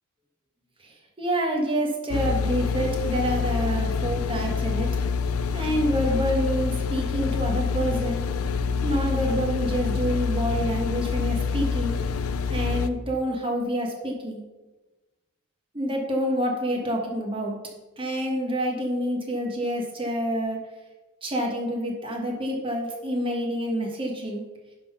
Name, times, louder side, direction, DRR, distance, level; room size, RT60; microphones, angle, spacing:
voice 1, 1.2-4.9 5.5-8.2 8.8-12.0 12.5-14.4 15.7-17.6 18.0-20.6 21.2-24.4, equal, 25° right, 0 dB, 1.5 m, -27 dB
sound 1, 2.1-12.9, left 5 dB, 70° left, 0.5 m, -26 dB
10.5 x 3.9 x 5.9 m, 1.1 s
head